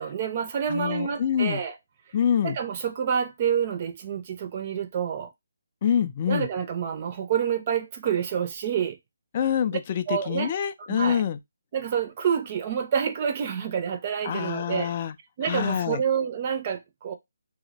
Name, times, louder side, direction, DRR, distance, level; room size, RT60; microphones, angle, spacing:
voice 1, 0.0-1.8 2.4-5.3 6.3-9.0 10.1-10.5 10.9-11.2 11.7-14.9 15.4-17.1, right 8 dB, 35° right, 0.4 m, -28 dB
voice 2, 0.7-1.6 2.1-2.6 5.8-6.5 9.3-11.4 14.2-15.1 15.4-16.0, left 8 dB, 35° left, 0.3 m, -26 dB
2.8 x 2.1 x 3.9 m
figure-of-eight pair, 160°, 0 cm